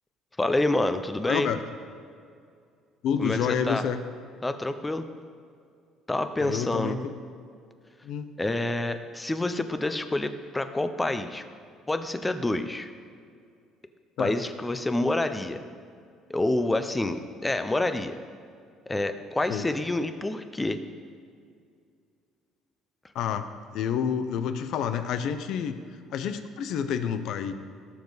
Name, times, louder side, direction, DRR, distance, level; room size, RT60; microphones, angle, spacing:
voice 1, 0.4-1.5 3.2-3.8 4.4-5.0 6.1-7.0 8.4-11.4 11.9-12.9 14.2-15.6 16.3-18.2 18.9-20.8, left 2 dB, 10° left, 9 dB, 0.7 m, -27 dB
voice 2, 1.3-1.6 3.0-4.0 6.4-7.1 8.0-8.3 14.2-14.3 19.5-19.7 23.1-23.5 23.7-25.8 26.1-27.5, left 7 dB, 65° left, 10 dB, 0.8 m, -29 dB
18.0 x 7.0 x 4.1 m, 2.3 s
cardioid pair, 120°, 0 cm